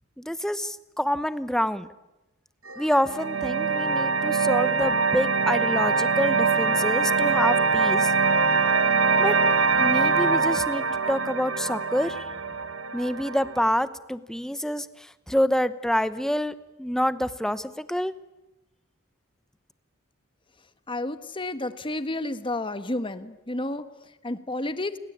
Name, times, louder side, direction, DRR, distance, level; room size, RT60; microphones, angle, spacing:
voice 1, 0.2-1.9 2.8-8.1 9.2-9.3 9.8-12.2 12.9-14.9 15.3-18.1, equal, ahead, 14 dB, 0.9 m, -27 dB
sound 1, 2.7-13.7, right 4 dB, 65° right, 1.9 m, -23 dB
voice 2, 20.9-25.0, left 2 dB, 25° left, 11 dB, 1.3 m, -31 dB
29.5 x 22.5 x 8.7 m, 1.0 s
head